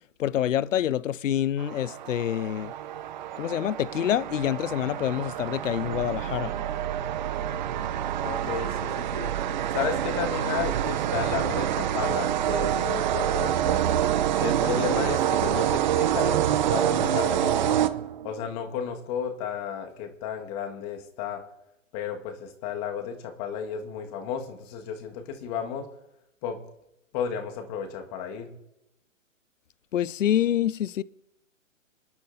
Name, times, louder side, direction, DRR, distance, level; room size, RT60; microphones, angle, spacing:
voice 1, 0.2-2.7 3.4-6.5 29.9-31.0, left 11 dB, 70° left, 0.5 m, -26 dB
sound 1, 1.6-18.4, right 11 dB, 35° right, 0.6 m, -27 dB
sound 2, 5.8-14.7, right 7 dB, 75° right, 2.4 m, -37 dB
voice 2, 8.2-9.3 9.7-13.8 14.4-17.8 18.2-21.4 21.9-25.9 26.4-26.6 27.1-28.5, left 7 dB, 30° left, 1.8 m, -33 dB
26.5 x 11.5 x 2.7 m
figure-of-eight pair, 125°, 39 cm